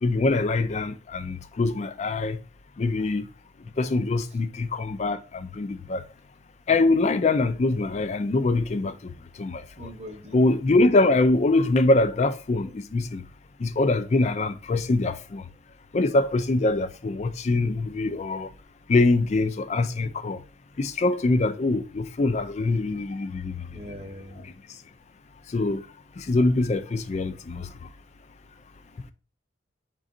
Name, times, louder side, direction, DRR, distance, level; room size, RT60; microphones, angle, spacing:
voice 1, 0.0-2.4 2.8-3.3 3.8-6.0 6.7-9.9 10.3-13.2 13.6-15.4 15.9-18.5 18.9-20.4 20.8-23.7 24.4-24.5 25.5-25.9 26.2-27.7, left 2 dB, 35° left, 0.4 m, -24 dB
voice 2, 9.8-10.4 23.7-24.5, equal, 35° right, 0.8 m, -41 dB
5.0 x 3.8 x 2.6 m
head